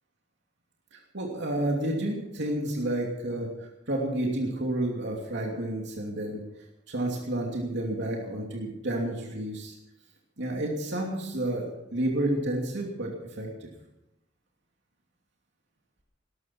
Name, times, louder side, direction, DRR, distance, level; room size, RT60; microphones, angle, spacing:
voice 1, 0.9-6.4 6.9-9.7 10.4-13.1 13.4-13.7, right 1 dB, 65° right, -1 dB, 2.8 m, -30 dB
20.0 x 13.0 x 4.6 m, 0.91 s
head